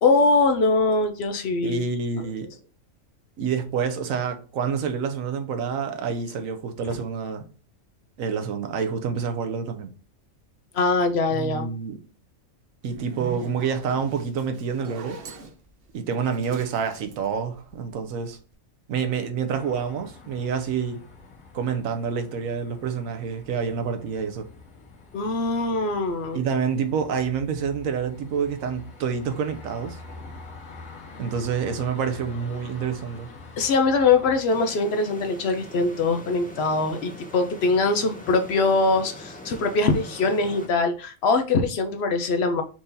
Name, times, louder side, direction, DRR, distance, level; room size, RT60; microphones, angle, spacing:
voice 1, 0.0-1.8 10.7-11.7 25.1-26.4 33.6-42.6, left 3 dB, 60° left, 0.8 m, -22 dB
voice 2, 1.6-2.5 3.4-7.4 8.2-9.9 11.3-12.0 12.8-15.2 15.9-18.4 18.9-21.0 21.5-24.5 26.3-30.0 31.2-33.3, right 6 dB, 80° right, 1.1 m, -28 dB
Zipper (clothing), 12.8-18.1, right 3 dB, 55° right, 0.8 m, -42 dB
sound 1, 19.5-34.4, left 3 dB, 85° left, 1.6 m, -46 dB
sound 2, 34.5-40.7, left 1 dB, 10° left, 0.5 m, -42 dB
4.5 x 2.7 x 3.7 m
omnidirectional pair, 1.4 m